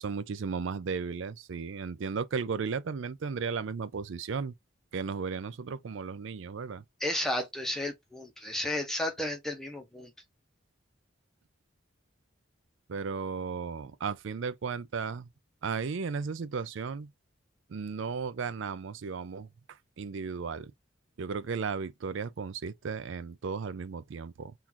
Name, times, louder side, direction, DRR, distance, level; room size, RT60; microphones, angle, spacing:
voice 1, 0.0-4.5 4.9-6.8 12.9-15.3 15.6-17.1 17.7-19.5 20.0-20.7 21.2-24.5, right 5 dB, 70° right, 0.4 m, -35 dB
voice 2, 7.0-10.1, left 1 dB, ahead, 0.8 m, -33 dB
3.8 x 2.5 x 2.8 m
head